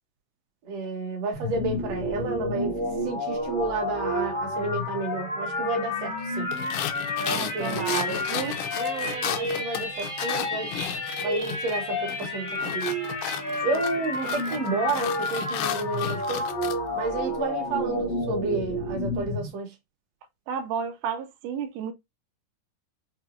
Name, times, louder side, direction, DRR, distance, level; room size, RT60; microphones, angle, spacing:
voice 1, 0.6-2.8 3.0-6.5 7.3-8.2 8.7-10.7 11.2-12.9 13.6-16.5 17.0-19.7, right 3 dB, 65° right, 1.9 m, -31 dB
sound 1, 1.3-19.5, left 1 dB, 55° left, 0.8 m, -30 dB
sound 2, 6.5-11.8 12.1-16.8, left 10 dB, 80° left, 1.9 m, -33 dB
voice 2, 7.2-8.6 13.4-13.6 14.2-14.4 20.5-21.9, right 7 dB, 80° right, 2.1 m, -32 dB
5.9 x 2.6 x 2.4 m
omnidirectional pair, 3.8 m